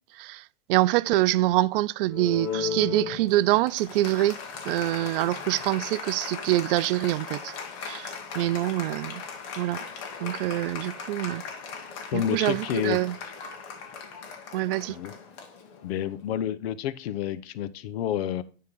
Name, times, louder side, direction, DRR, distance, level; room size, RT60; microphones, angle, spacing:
voice 1, 0.7-4.4 4.7-7.5 7.8-9.2 9.6-9.8 10.2-11.4 12.1-13.1 14.5-15.0, right 16 dB, 55° right, 0.5 m, -25 dB
Applause, 2.1-16.1, left 6 dB, 45° left, 1.9 m, -37 dB
voice 2, 12.1-13.0 14.9-15.1 15.8-18.4, left 11 dB, 65° left, 0.8 m, -29 dB
9.7 x 3.8 x 6.0 m
hypercardioid pair, 130°, 33 cm